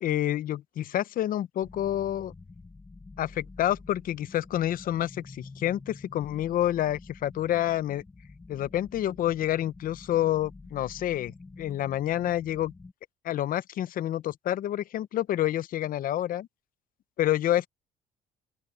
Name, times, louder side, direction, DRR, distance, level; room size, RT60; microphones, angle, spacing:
voice 1, 0.0-2.3 3.2-8.0 8.5-12.7 13.2-16.5 17.2-17.7, left 12 dB, 55° left, 0.7 m, -28 dB
sound 1, 1.6-12.9, left 3 dB, 15° left, 1.1 m, -48 dB
open air
cardioid pair, 110°, 17 cm